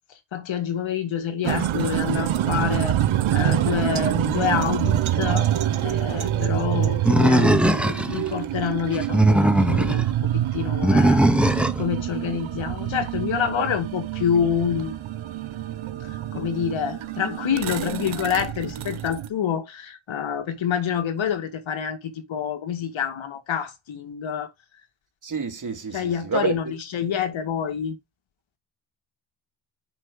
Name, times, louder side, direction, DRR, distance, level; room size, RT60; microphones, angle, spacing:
voice 1, 0.3-3.0 3.3-5.5 5.8-10.1 10.3-15.0 16.0-24.5 25.9-26.6 26.9-28.0, left 8 dB, 75° left, 2.2 m, -27 dB
sound 1, 1.4-19.3, right 11 dB, 85° right, 1.1 m, -26 dB
Animal, 7.1-8.2 8.9-10.0 10.8-11.8, right 1 dB, ahead, 1.0 m, -19 dB
voice 2, 25.2-26.7, right 5 dB, 40° right, 2.5 m, -29 dB
6.5 x 6.1 x 3.9 m
cardioid pair, 90°, 47 cm